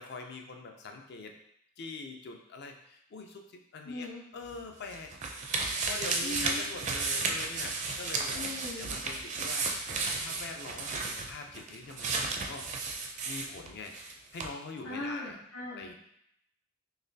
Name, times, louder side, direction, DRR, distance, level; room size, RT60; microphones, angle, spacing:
voice 1, 0.0-1.3 1.8-3.4 3.7-4.1 4.3-5.1 5.8-8.4 8.8-9.9 10.2-12.7 13.2-14.0 14.3-15.4 15.7-15.9, left 3 dB, 55° left, 3 dB, 0.5 m, -43 dB
voice 2, 3.8-4.2 6.2-6.7 8.3-9.0 14.8-15.9, left 2 dB, 90° left, -7 dB, 0.7 m, -39 dB
sound 1, 4.5-14.1 14.4-14.5, right 3 dB, 35° right, 0.4 m, -33 dB
4.0 x 3.1 x 2.7 m, 0.75 s
head